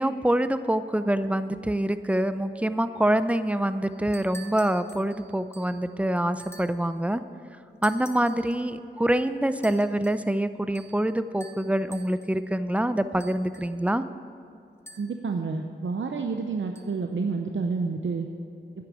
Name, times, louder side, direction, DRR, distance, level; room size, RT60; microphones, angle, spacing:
voice 1, 0.0-7.2 7.8-14.0, right 1 dB, 5° right, 12 dB, 0.6 m, -25 dB
sound 1, 3.9-5.8 6.4-6.9 7.8-8.6 9.6-10.3 10.7-11.1 11.4-12.4 13.2-13.9 14.9-15.3 16.8-16.9, right 1 dB, 15° left, 1.3 m, -48 dB
voice 2, 15.0-18.3, right 4 dB, 75° right, 4 dB, 0.7 m, -29 dB
9.8 x 8.6 x 8.5 m, 2.6 s
cardioid pair, 45°, 20 cm